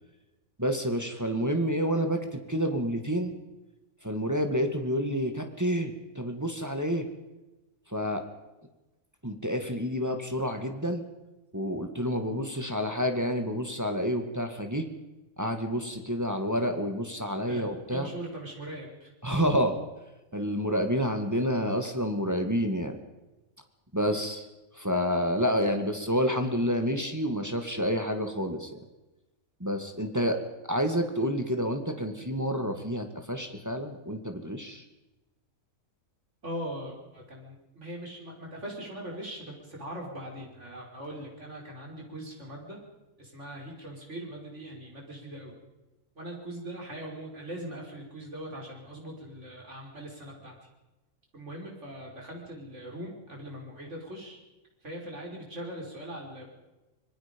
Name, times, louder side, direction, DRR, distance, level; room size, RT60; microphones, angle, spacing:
voice 1, 0.6-3.3 4.0-7.1 7.9-8.2 9.2-11.0 11.5-14.9 15.4-18.1 19.2-19.8 20.3-23.0 23.9-24.4 24.7-28.7 29.6-30.4 30.7-34.8, equal, 10° right, 5 dB, 2.0 m, -29 dB
voice 2, 17.5-19.1 36.4-42.8 43.2-45.5 46.2-50.6 51.3-54.4 54.8-56.5, right 1 dB, 55° right, -1 dB, 5.8 m, -41 dB
26.0 x 21.0 x 5.3 m, 1.0 s
omnidirectional pair, 1.4 m